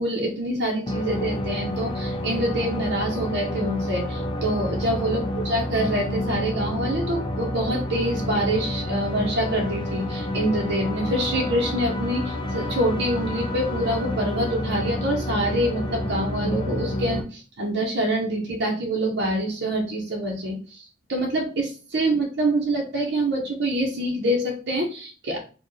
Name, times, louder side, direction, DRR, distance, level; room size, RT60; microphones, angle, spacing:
voice 1, 0.0-20.8 21.1-25.4, right 1 dB, 60° right, -1 dB, 0.9 m, -26 dB
sound 1, 0.9-17.2, left 1 dB, 25° left, 0.5 m, -29 dB
4.4 x 2.4 x 3.2 m, 0.36 s
head